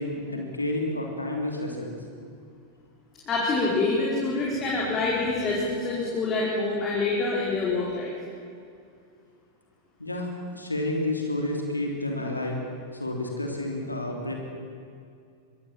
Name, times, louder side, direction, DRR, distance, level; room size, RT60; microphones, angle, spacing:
voice 1, 0.0-2.0 10.0-12.6 13.0-14.3, left 1 dB, 85° left, 1 dB, 3.3 m, -30 dB
voice 2, 3.3-8.1, left 3 dB, 25° left, -5 dB, 5.1 m, -26 dB
25.0 x 23.0 x 7.4 m, 2.4 s
figure-of-eight pair, 90°, 0 cm